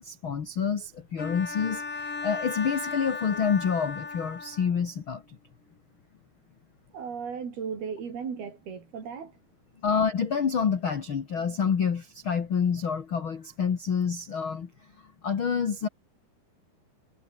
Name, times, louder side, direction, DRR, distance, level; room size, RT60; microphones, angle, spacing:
voice 1, 0.0-5.4 9.8-14.7 15.2-15.9, left 6 dB, 50° left, 1.6 m, -28 dB
Bowed string instrument, 1.2-4.9, left 4 dB, 25° left, 2.1 m, -36 dB
voice 2, 6.9-9.4, right 6 dB, 60° right, 5.9 m, -36 dB
omnidirectional pair, 5.1 m